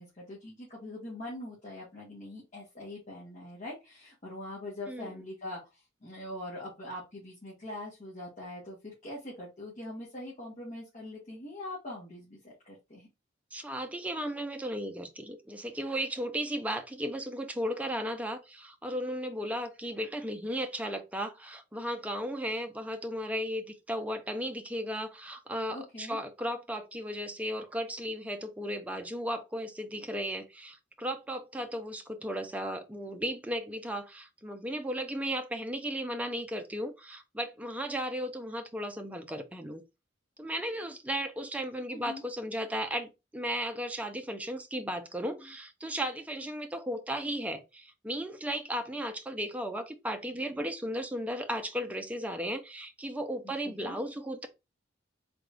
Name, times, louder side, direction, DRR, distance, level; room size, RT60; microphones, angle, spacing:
voice 1, 0.0-13.1 25.7-26.2 41.9-42.2 53.4-54.0, left 1 dB, 40° left, 1.5 m, -43 dB
voice 2, 4.9-5.2 13.5-39.8 40.4-54.5, equal, 10° right, 0.5 m, -35 dB
3.6 x 3.4 x 2.4 m
head